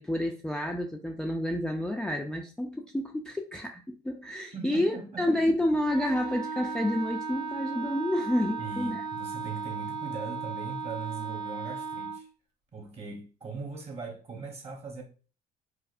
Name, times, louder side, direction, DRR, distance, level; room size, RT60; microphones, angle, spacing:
voice 1, 0.0-9.0, left 1 dB, 5° left, 0.3 m, -29 dB
voice 2, 4.5-5.3 8.6-12.3 12.7-15.0, right 4 dB, 40° right, 1.1 m, -40 dB
Wind instrument woodwind instrument, 5.9-12.2, right 5 dB, 75° right, 0.7 m, -36 dB
4.7 x 2.1 x 2.5 m
cardioid pair, 110°, 17 cm